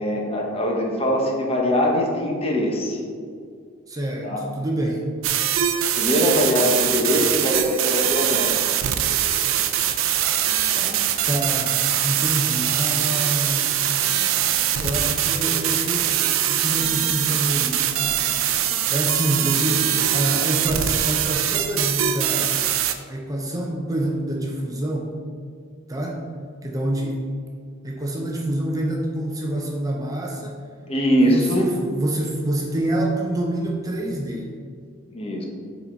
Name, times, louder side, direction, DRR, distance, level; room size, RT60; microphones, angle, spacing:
voice 1, 0.0-3.0 4.2-4.4 5.9-8.5 10.7-11.0 30.9-31.8 35.1-35.5, equal, 30° left, 0 dB, 0.9 m, -22 dB
voice 2, 3.9-5.1 11.2-13.9 14.8-18.3 18.9-22.6 23.1-25.2 25.9-26.2 26.6-27.2 27.8-30.5 31.2-34.6, right 1 dB, 20° right, -1 dB, 0.6 m, -27 dB
sound 1, 5.2-22.9, right 10 dB, 85° right, 0.5 m, -22 dB
7.4 x 4.1 x 4.4 m, 2.1 s
head